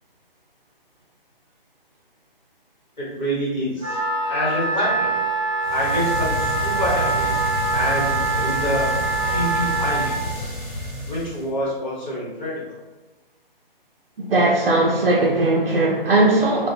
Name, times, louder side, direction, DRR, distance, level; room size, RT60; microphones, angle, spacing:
voice 1, 3.0-4.0 4.3-5.2 5.7-7.3 7.7-8.9 9.3-10.5 11.0-12.8, equal, 50° left, -8 dB, 1.2 m, -27 dB
Wind instrument woodwind instrument, 3.8-10.2, right 3 dB, 25° right, 0.9 m, -24 dB
sound 1, 5.6-11.5, equal, 5° left, 0.5 m, -29 dB
voice 2, 14.3-16.7, right 2 dB, 70° right, -3 dB, 0.5 m, -18 dB
2.5 x 2.1 x 2.5 m, 1.1 s
figure-of-eight pair, 140°, 29 cm